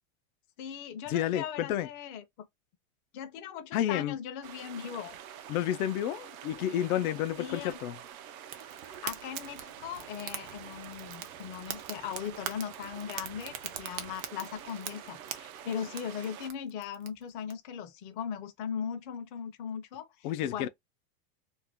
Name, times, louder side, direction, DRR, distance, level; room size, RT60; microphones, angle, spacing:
voice 1, 0.6-2.5 3.1-5.2 7.4-7.8 8.9-20.7, left 8 dB, 40° left, 0.5 m, -39 dB
voice 2, 1.1-1.9 3.7-4.2 5.5-8.0 20.2-20.7, left 11 dB, 85° left, 0.6 m, -30 dB
sound 1, 4.4-16.5, right 9 dB, 85° right, 0.7 m, -47 dB
Fire, 8.5-17.5, right 9 dB, 40° right, 0.4 m, -43 dB
2.5 x 2.1 x 3.5 m
supercardioid pair, 170°, 42 cm